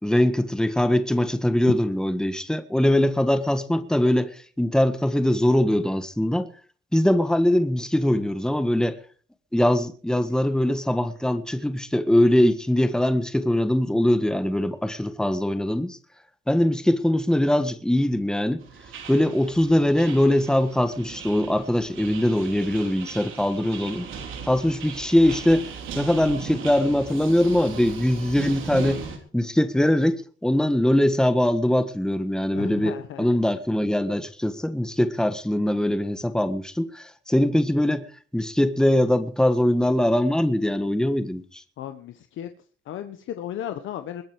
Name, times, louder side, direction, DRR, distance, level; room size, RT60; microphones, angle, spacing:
voice 1, 0.0-6.5 6.9-9.0 9.5-16.0 16.5-18.6 19.1-24.1 24.4-25.7 25.9-29.0 29.3-38.1 38.3-41.6, left 1 dB, 5° left, 1.6 m, -22 dB
sound 1, 18.6-29.2, right 6 dB, 80° right, 3.7 m, -38 dB
voice 2, 32.5-33.3 41.8-42.5 42.9-44.2, left 11 dB, 80° left, 1.1 m, -35 dB
21.5 x 8.9 x 4.8 m
cardioid pair, 90°, 20 cm